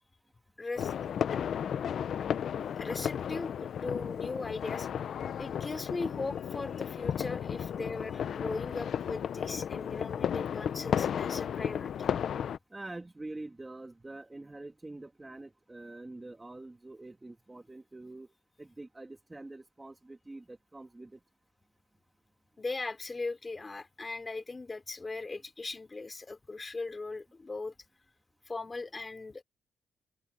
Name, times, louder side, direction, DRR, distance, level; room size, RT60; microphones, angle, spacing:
voice 1, 0.6-0.9 1.3-1.5 2.6-4.9 5.4-12.2 22.6-27.8 28.5-29.4, left 3 dB, 25° left, 3.6 m, -39 dB
sound 1, 0.8-12.6, left 8 dB, 60° left, 0.7 m, -34 dB
voice 2, 12.7-18.3 18.6-21.2, right 2 dB, 15° right, 2.1 m, -45 dB
open air
cardioid pair, 120°, 0 cm